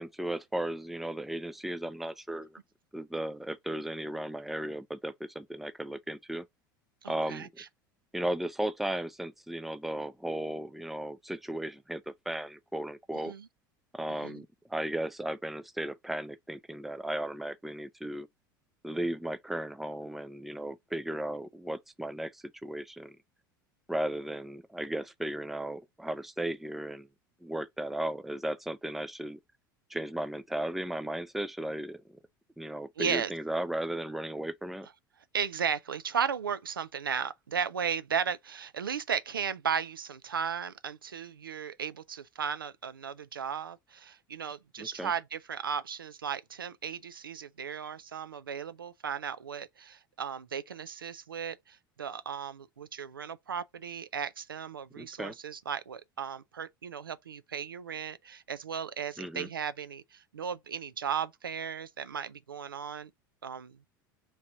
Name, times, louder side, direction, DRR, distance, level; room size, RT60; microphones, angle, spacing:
voice 1, 0.0-2.6 2.9-6.5 7.1-7.5 8.1-13.3 13.9-18.3 18.8-23.2 23.9-27.1 27.4-29.4 29.9-32.2 32.6-34.9 44.8-45.1 55.0-55.4 59.2-59.5, right 1 dB, ahead, 0.4 m, -35 dB
voice 2, 7.0-7.5 13.3-13.5 14.2-14.4 33.0-33.3 35.3-63.1 63.4-63.8, right 7 dB, 85° right, 0.4 m, -35 dB
3.1 x 2.9 x 3.6 m
figure-of-eight pair, 75°, 11 cm